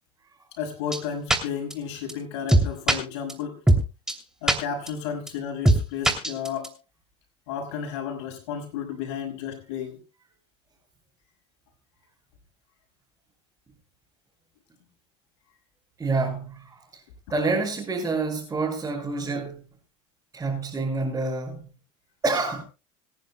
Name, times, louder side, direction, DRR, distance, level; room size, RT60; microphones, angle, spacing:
voice 1, 0.5-3.6 4.4-6.8 7.5-10.0, left 7 dB, 80° left, 5.7 m, -33 dB
sound 1, 0.9-1.0 1.3-1.4 1.7-1.8 2.1-2.2 2.5-3.0 3.3-3.4 3.7-3.8 4.1-4.2 4.5-4.6 4.9-5.0 5.3-5.4 5.6-5.8 6.0-6.7, right 1 dB, 5° right, 2.9 m, -18 dB
voice 2, 16.0-17.0 17.3-19.6 20.3-21.6 22.2-22.6, right 3 dB, 20° right, 5.7 m, -27 dB
26.0 x 10.5 x 2.2 m
supercardioid pair, 100°, 14 cm